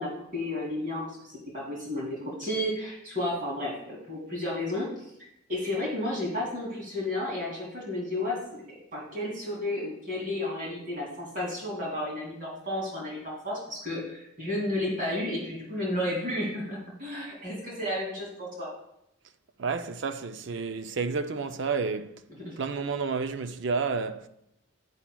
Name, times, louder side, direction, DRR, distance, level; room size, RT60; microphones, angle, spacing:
voice 1, 0.0-5.1 5.5-8.6 8.9-18.7 22.3-22.6, left 1 dB, 40° right, 2.6 m, -32 dB
voice 2, 19.6-22.1 22.6-24.3, right 4 dB, 60° right, 0.5 m, -30 dB
10.0 x 9.7 x 2.3 m
head